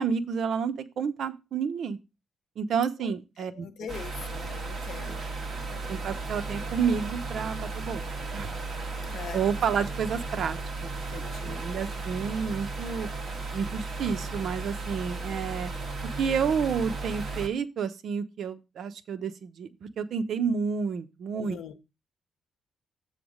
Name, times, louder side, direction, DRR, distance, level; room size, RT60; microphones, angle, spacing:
voice 1, 0.0-2.0 2.6-3.6 5.9-8.0 8.3-8.5 9.3-13.1 13.5-15.7 16.2-21.6, right 6 dB, 65° right, 0.8 m, -30 dB
voice 2, 3.4-5.3 5.6-6.1 9.0-9.5 11.1-11.7 21.3-21.8, left 7 dB, 70° left, 1.0 m, -43 dB
sound 1, 3.9-17.5, right 3 dB, 40° right, 1.6 m, -35 dB
7.9 x 3.4 x 6.4 m
cardioid pair, 130°, 0 cm